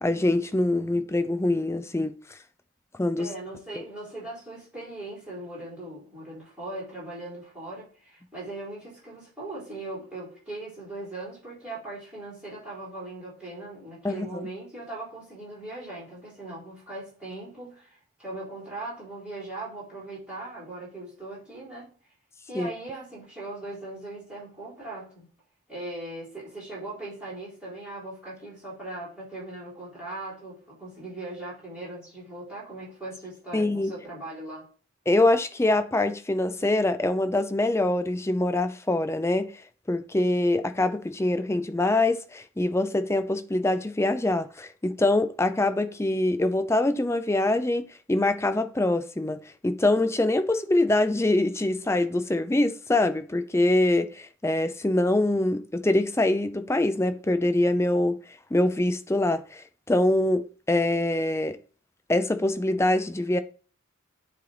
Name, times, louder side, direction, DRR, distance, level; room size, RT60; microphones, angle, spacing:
voice 1, 0.0-2.1 3.0-3.3 14.0-14.5 22.6-22.7 33.5-33.9 35.1-39.5 39.9-58.2 58.5-61.6 62.1-63.4, left 2 dB, 15° left, 0.4 m, -24 dB
voice 2, 3.2-21.9 22.5-25.3 25.7-34.7, right 2 dB, 5° right, 3.7 m, -39 dB
9.7 x 3.3 x 3.9 m
head